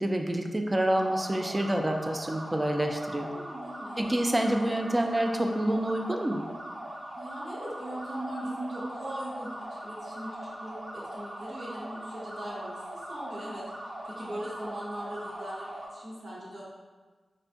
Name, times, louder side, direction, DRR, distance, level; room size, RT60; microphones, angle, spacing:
voice 1, 0.0-3.3 4.0-6.4, right 1 dB, 25° right, 3 dB, 0.3 m, -27 dB
sound 1, 0.9-15.9, right 1 dB, 50° right, 0.7 m, -41 dB
voice 2, 3.3-4.1 7.2-16.6, right 1 dB, 70° right, -9 dB, 1.2 m, -40 dB
4.1 x 2.2 x 2.6 m, 1.4 s
cardioid pair, 60°, 0 cm